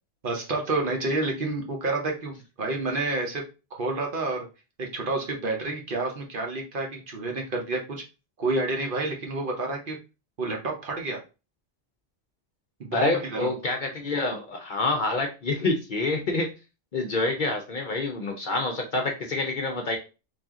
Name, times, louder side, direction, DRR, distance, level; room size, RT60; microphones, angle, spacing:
voice 1, 0.2-3.5 3.8-4.5 4.8-8.0 8.4-10.0 10.4-11.2 12.8-13.5, right 2 dB, 50° right, 1 dB, 0.9 m, -29 dB
voice 2, 12.9-16.5 16.9-20.0, left 3 dB, 50° left, 2 dB, 0.7 m, -27 dB
3.3 x 2.8 x 3.5 m, 0.30 s
omnidirectional pair, 1.2 m